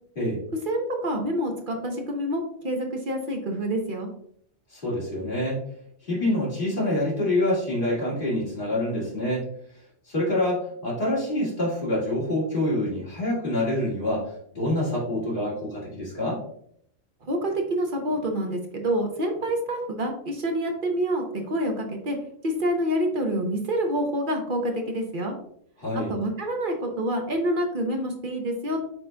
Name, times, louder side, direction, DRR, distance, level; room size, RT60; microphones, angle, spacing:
voice 1, 0.7-4.1 17.2-22.2 22.4-25.3 26.1-28.8, right 1 dB, 45° right, 2 dB, 0.8 m, -27 dB
voice 2, 4.7-5.6 6.0-9.5 10.1-16.4 25.8-26.1, left 1 dB, 40° left, -6 dB, 2.3 m, -26 dB
6.0 x 3.9 x 2.2 m, 0.67 s
omnidirectional pair, 1.3 m